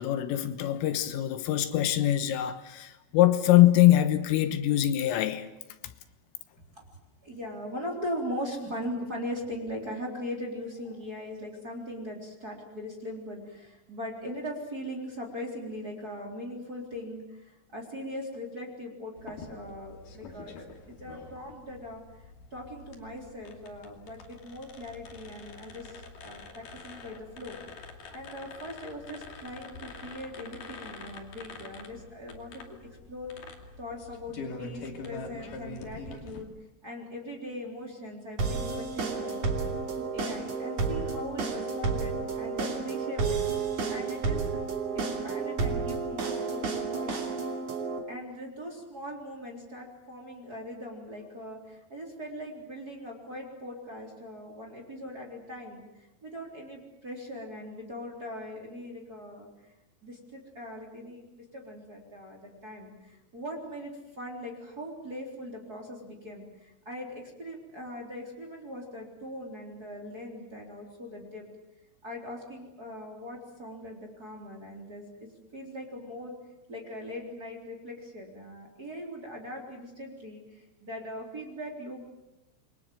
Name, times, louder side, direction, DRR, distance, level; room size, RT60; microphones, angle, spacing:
voice 1, 0.0-5.5, left 13 dB, 80° left, 3.7 m, -23 dB
voice 2, 7.2-20.6 20.9-22.0 22.5-27.6 28.1-32.8 33.1-33.3 33.8-36.5 36.8-39.5 40.0-43.4 43.9-44.6 44.9-47.2 48.1-55.8 56.2-59.7 60.0-71.5 72.0-76.3 76.7-82.0, equal, 20° right, 3.5 m, -40 dB
sound 1, 19.2-36.4, left 3 dB, 45° left, 3.6 m, -45 dB
sound 2, 38.4-48.0, right 4 dB, 40° right, 3.3 m, -31 dB
28.5 x 23.0 x 7.7 m
omnidirectional pair, 5.9 m